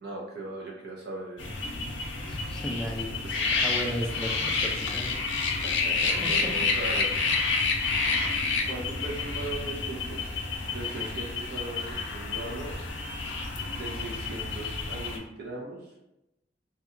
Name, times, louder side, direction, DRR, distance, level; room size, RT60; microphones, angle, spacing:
voice 1, 0.0-1.6 3.2-3.6 5.6-7.3 8.6-10.3 10.7-12.8 13.7-15.9, right 2 dB, 60° right, -2 dB, 0.5 m, -39 dB
sound 1, 1.4-15.2, left 4 dB, 80° left, 0.5 m, -29 dB
voice 2, 2.3-3.1 3.6-5.2 6.0-6.5, equal, 5° left, 0 dB, 0.3 m, -35 dB
2.7 x 2.2 x 2.5 m, 0.91 s
head